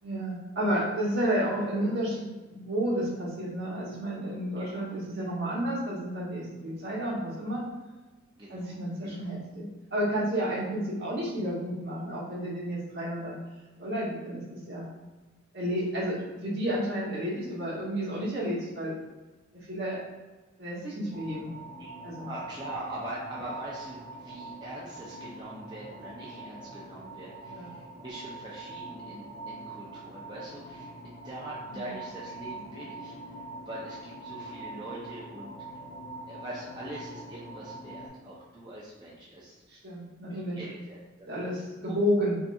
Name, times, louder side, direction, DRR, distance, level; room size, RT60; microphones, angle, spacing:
voice 1, 0.0-7.6 8.5-9.6 9.9-13.3 13.8-14.9 15.5-18.9 19.5-20.0 20.6-21.5 22.0-22.3 27.5-27.7 31.7-32.0 39.7-40.6 41.3-42.4, equal, 55° right, -7 dB, 1.4 m, -31 dB
voice 2, 8.4-8.7 9.0-9.3 21.8-33.2 33.6-35.8 36.3-39.6 40.3-41.3, right 1 dB, 20° right, -6 dB, 0.6 m, -43 dB
sound 1, 21.1-38.1, right 2 dB, 50° left, 1.2 m, -43 dB
5.2 x 2.7 x 2.3 m, 1.2 s
head